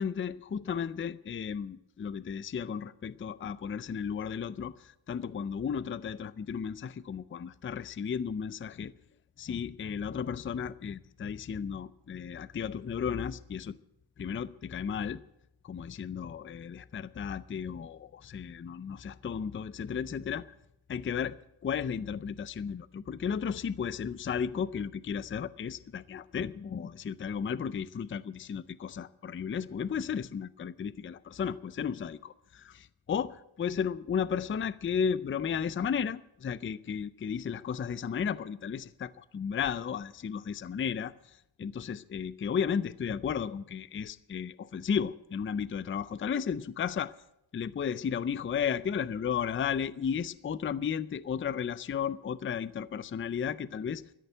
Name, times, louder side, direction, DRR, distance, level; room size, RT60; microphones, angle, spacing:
voice 1, 0.0-8.9 9.4-13.7 14.2-15.2 15.6-20.5 20.9-21.4 21.6-41.1 41.6-47.1 47.5-54.0, left 7 dB, 25° left, 0.4 m, -34 dB
13.5 x 10.5 x 9.0 m
wide cardioid pair, 125°, 50 cm